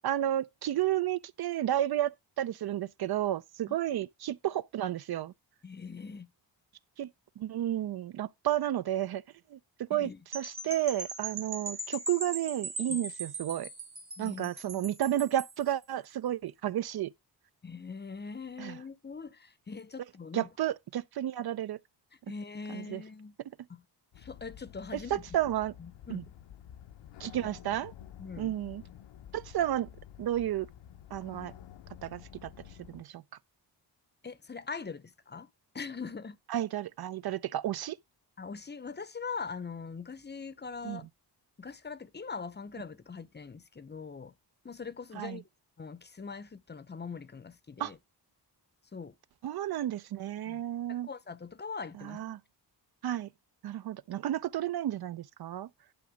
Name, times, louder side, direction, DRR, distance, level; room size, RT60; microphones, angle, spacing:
voice 1, 0.0-5.3 7.0-7.1 7.4-9.2 9.5-9.6 9.9-10.1 10.3-13.7 14.2-17.1 18.6-18.7 20.3-21.8 22.7-23.0 25.1-25.7 26.1-26.2 27.2-27.9 28.4-28.8 29.3-29.9 30.2-30.7 31.1-31.5 32.0-32.5 32.9-33.2 36.5-38.0 40.9-41.0 45.2-45.4 47.8-47.9 49.4-51.1 52.1-52.4 53.0-53.3 53.6-55.7, right 12 dB, 60° right, 0.5 m, -32 dB
voice 2, 5.6-6.3 9.9-10.2 12.9-13.0 14.2-14.8 17.6-20.5 22.3-23.4 23.7-23.8 24.2-25.2 25.8-26.2 28.2-28.6 34.2-35.5 35.7-36.4 38.4-41.1 41.6-44.3 44.6-45.4 45.8-48.0 48.9-49.1 50.5-50.6 50.9-52.2, left 5 dB, 25° left, 0.6 m, -42 dB
sound 1, 10.3-15.6, right 2 dB, 30° right, 1.7 m, -40 dB
sound 2, 24.1-33.0, left 11 dB, 90° left, 0.8 m, -50 dB
11.0 x 4.1 x 4.9 m
wide cardioid pair, 120°, 42 cm